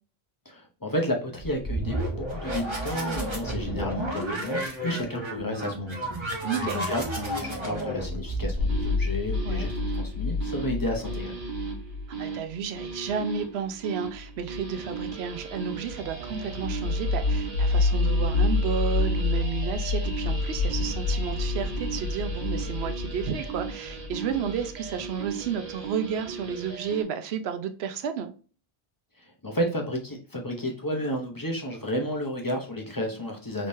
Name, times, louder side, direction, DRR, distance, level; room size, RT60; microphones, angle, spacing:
voice 1, 0.5-6.3 6.6-11.4 29.2-33.7, left 1 dB, 25° left, 0.6 m, -32 dB
sound 1, 1.4-9.0, right 1 dB, 30° right, 0.9 m, -32 dB
voice 2, 6.4-6.8 9.5-9.7 12.2-28.3, right 7 dB, 80° right, 0.8 m, -32 dB
sound 2, 8.6-27.0, left 2 dB, 55° right, 1.1 m, -29 dB
3.6 x 3.1 x 2.6 m
omnidirectional pair, 1.0 m